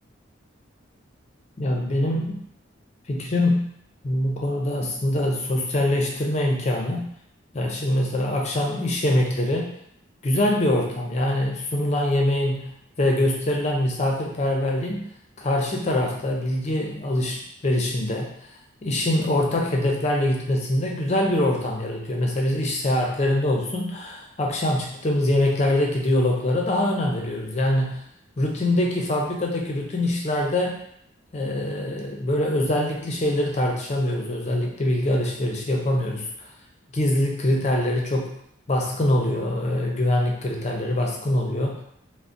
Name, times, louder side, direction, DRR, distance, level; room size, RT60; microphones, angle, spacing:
voice 1, 1.6-2.4 3.1-3.7 4.0-7.1 7.5-9.7 10.2-15.0 15.4-18.3 18.8-28.0 28.4-30.8 31.3-36.5 36.9-38.4 38.7-41.8, left 1 dB, 35° left, 0 dB, 0.5 m, -24 dB
3.9 x 2.0 x 2.5 m, 0.70 s
head